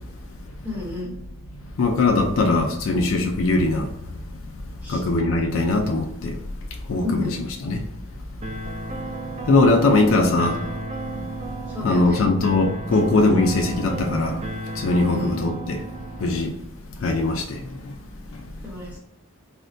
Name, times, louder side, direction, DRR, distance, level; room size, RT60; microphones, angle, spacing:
voice 1, 0.6-1.1 4.8-5.0 7.0-7.4 10.1-10.6 11.7-12.3 15.1-15.4 18.6-19.0, left 2 dB, 10° right, 1.0 m, -31 dB
voice 2, 1.8-3.9 4.9-6.4 6.9-7.8 9.5-10.6 11.8-14.4 14.8-15.8 16.2-16.5 17.0-17.6, left 2 dB, 70° left, 0.4 m, -20 dB
sound 1, 8.4-16.4, right 2 dB, 30° right, 0.4 m, -33 dB
4.2 x 2.1 x 2.5 m
head